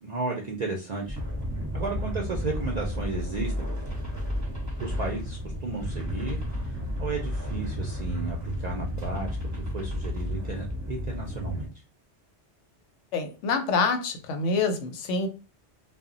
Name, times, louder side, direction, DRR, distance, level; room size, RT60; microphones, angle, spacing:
voice 1, 0.0-1.2 1.7-3.7 4.8-11.7, right 3 dB, 65° right, 0.4 m, -34 dB
sound 1, 1.1-11.7, equal, 20° right, 0.6 m, -32 dB
voice 2, 13.1-15.3, left 4 dB, 85° left, 0.9 m, -26 dB
2.1 x 2.1 x 3.6 m
omnidirectional pair, 1.2 m